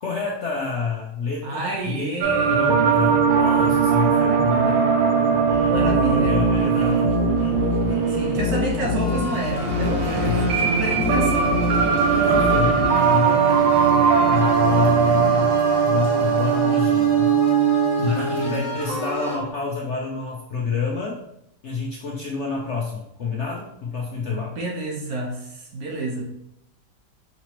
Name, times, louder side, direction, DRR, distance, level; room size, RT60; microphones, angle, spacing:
voice 1, 0.0-2.1 2.5-4.8 6.1-7.2 10.2-10.5 12.0-15.6 15.8-17.4 18.0-21.2 21.6-24.5, left 5 dB, 60° left, -2 dB, 0.7 m, -28 dB
voice 2, 1.4-2.7 4.1-4.8 5.6-6.4 8.1-11.6 18.0-18.7 24.2-26.2, right 2 dB, 65° right, 0 dB, 1.4 m, -29 dB
sound 1, 2.2-19.5, right 7 dB, 85° right, 1.3 m, -20 dB
sound 2, 5.5-12.9, left 4 dB, 30° right, 0.9 m, -26 dB
sound 3, 9.0-19.4, left 1 dB, 45° left, 1.9 m, -31 dB
5.8 x 2.9 x 3.0 m, 0.79 s
omnidirectional pair, 1.8 m